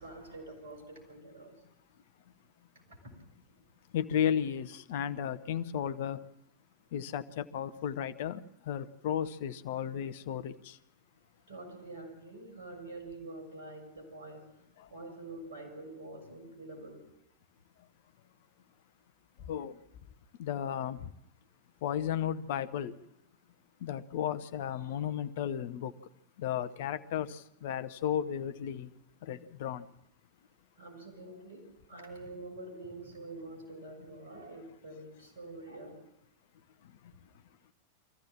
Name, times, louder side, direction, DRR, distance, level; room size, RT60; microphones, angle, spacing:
voice 1, 0.0-1.6 2.7-3.2 3.6-3.7 11.5-14.6 14.9-17.1 30.8-36.0, right 2 dB, 60° right, 6.8 m, -46 dB
voice 2, 3.9-6.2 6.9-10.8 14.8-14.9 19.4-19.8 20.4-21.1 21.8-23.0 23.8-25.9 26.4-28.9 29.2-29.9 36.8-37.1, left 9 dB, 55° left, 0.8 m, -34 dB
24.5 x 15.0 x 7.5 m
figure-of-eight pair, 90°, 0 cm